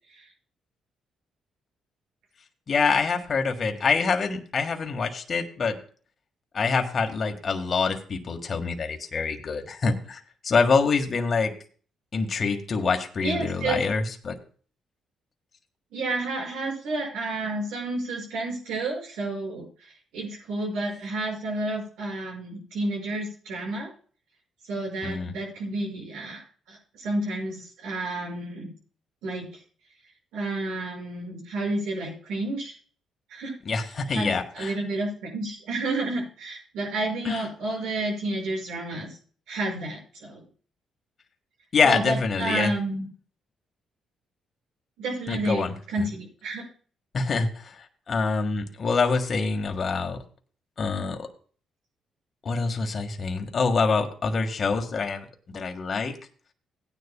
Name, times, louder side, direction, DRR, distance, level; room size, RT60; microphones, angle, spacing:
voice 1, 2.7-5.8 6.5-11.5 12.1-14.4 25.0-25.3 33.6-34.7 37.2-37.4 41.7-42.7 45.3-45.7 47.1-50.2 50.8-51.2 52.4-56.1, left 4 dB, 45° left, 4 dB, 1.6 m, -25 dB
voice 2, 13.2-13.8 15.9-23.9 24.6-26.4 26.7-28.7 29.2-29.6 30.3-32.7 33.3-33.5 34.1-39.2 39.5-40.4 41.8-43.1 45.0-46.7, right 2 dB, 85° right, 0 dB, 6.0 m, -30 dB
17.5 x 9.9 x 2.2 m, 0.43 s
cardioid pair, 85°, 0 cm